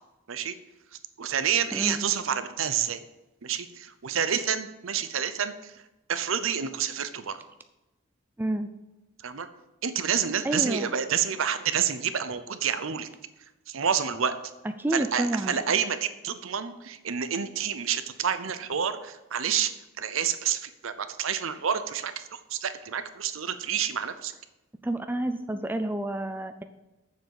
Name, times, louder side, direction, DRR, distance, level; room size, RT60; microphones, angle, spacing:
voice 1, 1.2-3.0 3.4-5.8 6.1-7.4 9.2-9.5 9.8-13.1 13.7-14.3 14.9-19.7 20.0-24.3, right 8 dB, 80° right, 11 dB, 0.7 m, -28 dB
voice 2, 1.7-2.1 8.4-8.7 10.4-10.9 14.8-15.6 24.8-26.6, right 1 dB, 10° right, 8 dB, 0.4 m, -29 dB
7.1 x 6.3 x 7.0 m, 1.0 s
head